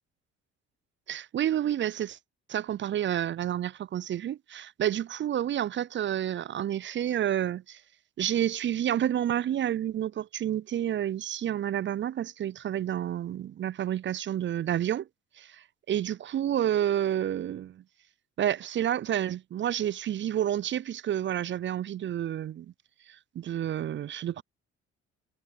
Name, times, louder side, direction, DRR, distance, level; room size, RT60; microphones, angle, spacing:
voice 1, 1.1-2.2 2.5-7.8 8.2-15.1 15.4-17.8 18.4-22.7 23.1-24.4, right 11 dB, 35° right, 0.4 m, -29 dB
hypercardioid pair, 55°, 34 cm